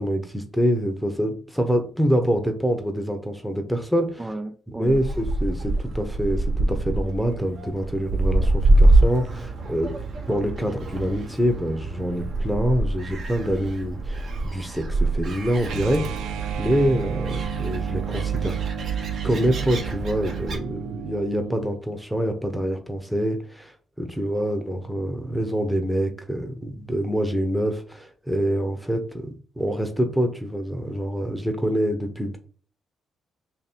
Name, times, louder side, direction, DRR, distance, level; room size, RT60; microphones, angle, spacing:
voice 1, 0.0-4.3 4.7-9.9 10.3-16.3 16.6-18.6 19.2-32.4, equal, ahead, 0.8 m, -26 dB
voice 2, 4.2-5.0, right 2 dB, 15° right, 0.3 m, -34 dB
Gull seagull, 4.9-20.6, right 2 dB, 60° right, 1.0 m, -25 dB
sound 1, 15.6-21.7, right 8 dB, 85° right, 0.4 m, -31 dB
2.9 x 2.8 x 4.3 m
cardioid pair, 90°, 0 cm